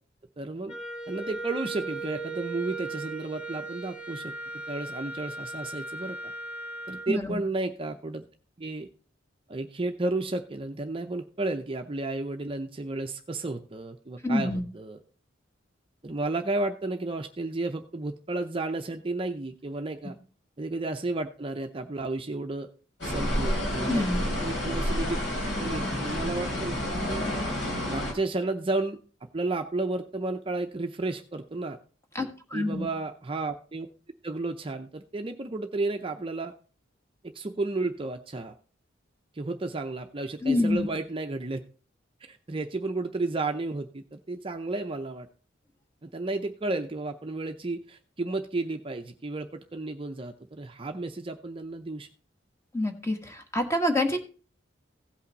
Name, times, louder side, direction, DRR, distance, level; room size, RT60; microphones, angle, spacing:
voice 1, 0.4-0.8 1.1-4.3 4.7-6.3 6.9-8.2 8.6-8.9 9.5-15.0 16.0-20.2 20.6-22.7 23.0-25.2 25.5-26.8 27.1-27.2 27.9-31.8 32.5-33.9 34.2-36.5 37.2-38.5 39.3-41.6 42.2-45.3 46.0-52.1, right 2 dB, 30° right, 6 dB, 0.6 m, -32 dB
Wind instrument woodwind instrument, 0.7-7.1, right 3 dB, 40° left, 1.6 m, -37 dB
voice 2, 14.2-14.6 23.9-24.2 32.1-32.9 40.4-40.9 52.7-54.2, left 1 dB, 15° left, 5 dB, 1.3 m, -27 dB
sound 1, 23.0-28.1, left 1 dB, 70° left, 3.2 m, -29 dB
16.0 x 5.6 x 3.9 m, 0.39 s
head